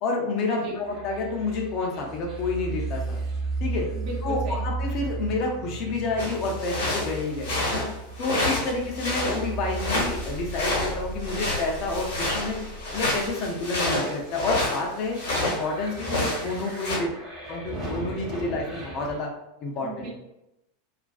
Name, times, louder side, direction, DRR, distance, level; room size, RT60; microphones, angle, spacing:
voice 1, 0.0-3.2 3.6-3.9 4.2-7.9 8.2-12.6 12.9-15.2 15.4-17.1 17.5-19.3 19.6-20.1, left 3 dB, 40° left, 0 dB, 0.5 m, -29 dB
sound 1, 0.8-19.2, right 3 dB, 25° right, 1.0 m, -35 dB
voice 2, 3.9-4.6 16.0-16.3 19.8-20.1, right 3 dB, 45° right, -2 dB, 0.7 m, -36 dB
sound 2, 6.2-15.6 15.9-17.0, left 2 dB, 60° left, 0.9 m, -29 dB
2.4 x 2.2 x 2.3 m, 0.89 s
figure-of-eight pair, 85°, 0 cm